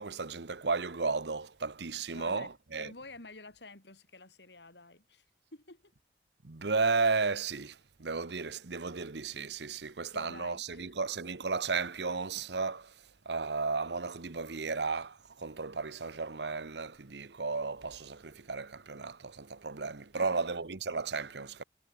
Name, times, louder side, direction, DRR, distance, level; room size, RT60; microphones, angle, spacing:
voice 1, 0.0-2.9 6.4-21.6, right 4 dB, 80° right, 1.0 m, -34 dB
voice 2, 2.1-5.2 5.5-5.9 10.1-10.9 20.1-20.4, left 2 dB, 80° left, 5.0 m, -50 dB
head